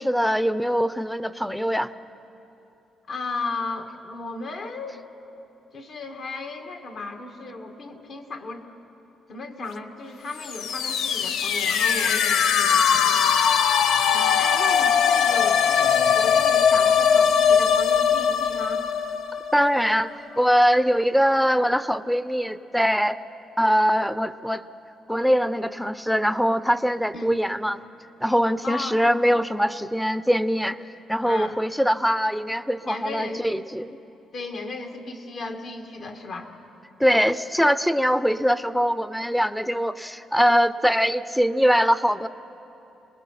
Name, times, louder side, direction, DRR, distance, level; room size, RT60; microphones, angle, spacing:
voice 1, 0.0-1.9 19.5-23.2 23.6-24.6 25.1-27.8 28.2-30.8 31.1-34.0 37.0-42.3, equal, ahead, 14 dB, 0.6 m, -22 dB
voice 2, 3.1-5.0 5.7-8.7 9.3-13.7 14.1-18.8 27.1-27.4 28.6-29.0 31.2-31.6 32.8-33.5 34.3-36.5, left 3 dB, 60° left, 4 dB, 2.0 m, -35 dB
sound 1, 10.4-20.1, left 7 dB, 80° left, 0.7 m, -20 dB
27.5 x 20.0 x 5.8 m, 3.0 s
cardioid pair, 90°, 0 cm